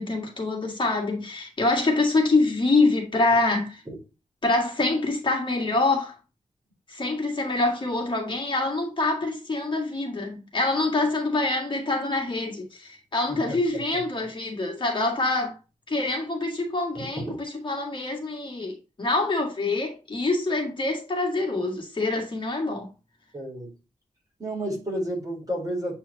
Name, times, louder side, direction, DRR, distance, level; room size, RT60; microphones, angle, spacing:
voice 1, 0.0-3.8 4.4-6.2 6.9-15.6 15.9-22.9, left 2 dB, 40° left, 1.9 m, -25 dB
voice 2, 13.3-14.0 16.9-17.4 23.3-23.7 24.4-26.0, right 1 dB, 25° right, 3.8 m, -32 dB
8.0 x 4.7 x 2.8 m
wide cardioid pair, 125°, 13 cm